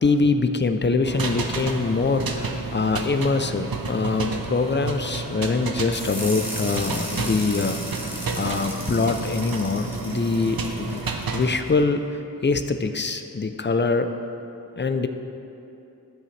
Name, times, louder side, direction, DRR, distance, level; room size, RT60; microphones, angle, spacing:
voice 1, 0.0-7.8 8.3-11.0 11.3-12.0 12.4-14.1 14.8-15.1, left 4 dB, 30° left, 8 dB, 0.5 m, -23 dB
sound 1, 1.0-11.6, right 4 dB, 80° right, 0.7 m, -31 dB
sound 2, 5.9-11.7, equal, 5° right, 1.6 m, -36 dB
12.0 x 7.7 x 3.3 m, 2.8 s
wide cardioid pair, 50°, 35 cm